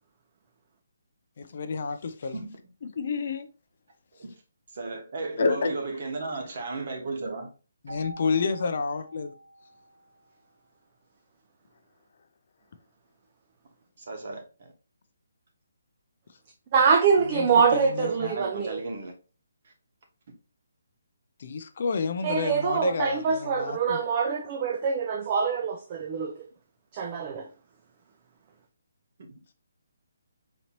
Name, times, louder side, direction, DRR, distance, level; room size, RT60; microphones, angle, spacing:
voice 1, 1.4-2.4 2.8-3.5 5.4-5.7 7.8-9.4 17.3-18.3 21.4-24.0, left 5 dB, 40° left, 0.4 m, -29 dB
voice 2, 4.7-7.5 14.0-14.7 18.0-19.1 19.6-19.7, right 3 dB, 40° right, 1.1 m, -34 dB
Keyboard (musical), 7.9-10.5, right 1 dB, 90° right, 2.0 m, -46 dB
voice 3, 16.7-18.8 22.2-26.3 26.9-27.5, right 6 dB, 25° right, 0.4 m, -24 dB
4.1 x 2.9 x 2.9 m
hypercardioid pair, 175°, 0 cm